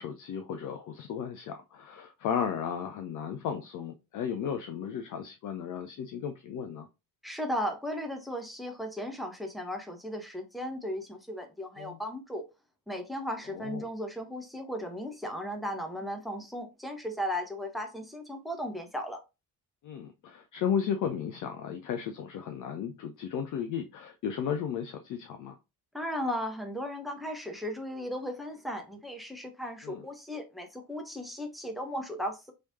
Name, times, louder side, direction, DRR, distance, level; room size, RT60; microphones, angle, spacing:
voice 1, 0.0-6.9 11.8-12.0 13.5-13.9 19.8-25.6 29.8-30.0, left 8 dB, 40° left, 0.5 m, -34 dB
voice 2, 7.2-12.4 12.9-19.2 25.9-32.5, equal, ahead, 0.8 m, -36 dB
3.1 x 3.0 x 2.6 m
figure-of-eight pair, 40°, 49 cm